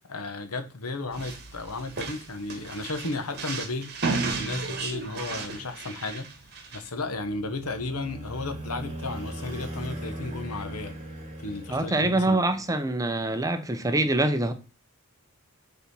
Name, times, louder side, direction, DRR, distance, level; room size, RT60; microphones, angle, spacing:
voice 1, 0.1-3.9 4.3-6.3 6.7-10.9 11.4-12.4, left 3 dB, 85° left, 1.2 m, -34 dB
sound 1, 1.1-6.9, right 3 dB, 50° right, 1.4 m, -33 dB
sound 2, 7.0-12.7, right 1 dB, 35° right, 2.1 m, -39 dB
voice 2, 11.7-14.5, right 2 dB, 15° right, 0.7 m, -25 dB
6.9 x 4.2 x 5.5 m
head